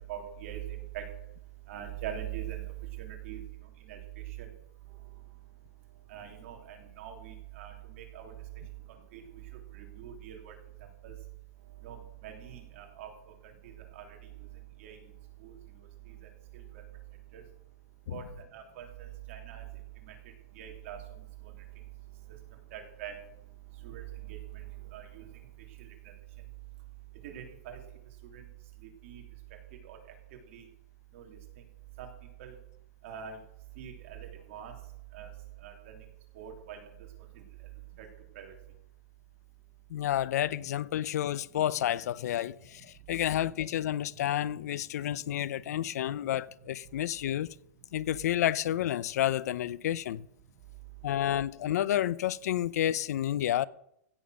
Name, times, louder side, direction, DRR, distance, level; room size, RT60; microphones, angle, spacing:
voice 1, 0.1-1.0 1.7-2.6 3.0-3.4 3.9-4.0 4.4-4.5 6.1-8.3 9.1-9.2 9.7-10.5 11.0-11.1 11.8-13.1 13.6-14.1 14.8-15.0 15.4-15.5 17.3-17.4 18.1-18.2 18.5-18.9 19.3-19.6 20.1-20.2 20.5-21.0 22.7-23.1 23.8-24.6 24.9-25.2 27.2-27.8 28.3-28.4 29.0-29.2 29.8-30.0 30.5-30.6 31.1-31.4 32.0-32.1 32.4-32.5 33.0-33.4 33.8-34.7 35.1-35.3 35.6-35.7 36.3-36.8 38.0-38.1 38.3-38.5, right 10 dB, 50° right, 3.1 m, -42 dB
voice 2, 39.9-47.5 47.9-50.3 51.0-53.7, left 12 dB, 70° left, 0.6 m, -30 dB
16.0 x 7.2 x 6.4 m
supercardioid pair, 160°, 9 cm